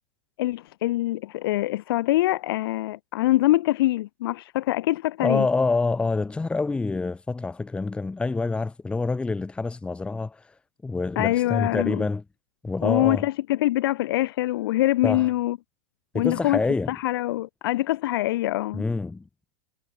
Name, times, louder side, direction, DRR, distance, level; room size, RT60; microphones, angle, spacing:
voice 1, 0.4-5.5 11.1-12.0 12.8-15.6 16.1-16.6 16.9-18.8, left 16 dB, 70° left, 1.5 m, -24 dB
voice 2, 5.2-10.4 10.8-12.2 12.6-13.3 15.0-15.3 16.1-17.0 18.7-19.2, left 3 dB, 10° left, 1.1 m, -26 dB
supercardioid pair, 135°, 13 cm